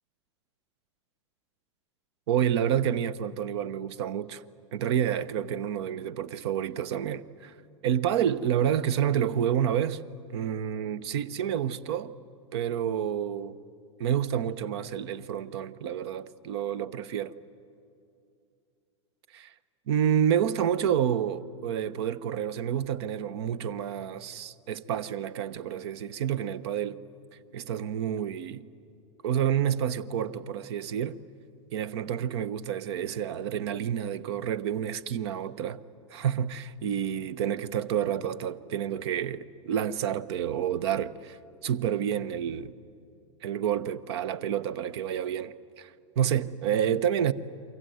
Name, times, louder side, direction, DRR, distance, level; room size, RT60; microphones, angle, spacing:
voice 1, 2.3-4.4 4.7-7.5 7.8-10.0 10.3-12.1 12.5-13.6 14.0-17.3 19.3-19.5 19.9-27.0 27.5-28.6 29.2-31.2 31.7-35.8 36.1-41.4 41.6-42.7 43.4-47.3, right 9 dB, 60° right, 0.9 m, -29 dB
28.5 x 24.0 x 8.0 m
hypercardioid pair, 100°, 16 cm